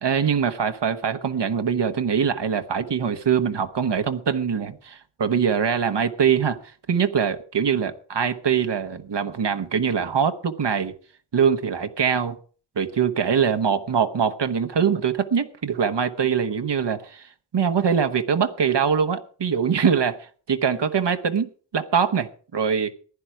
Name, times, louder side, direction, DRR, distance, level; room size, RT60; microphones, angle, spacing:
voice 1, 0.0-6.6 6.9-10.9 11.3-12.3 12.8-22.9, right 7 dB, 80° right, 1.3 m, -23 dB
15.0 x 10.5 x 4.8 m
wide cardioid pair, 75°, 42 cm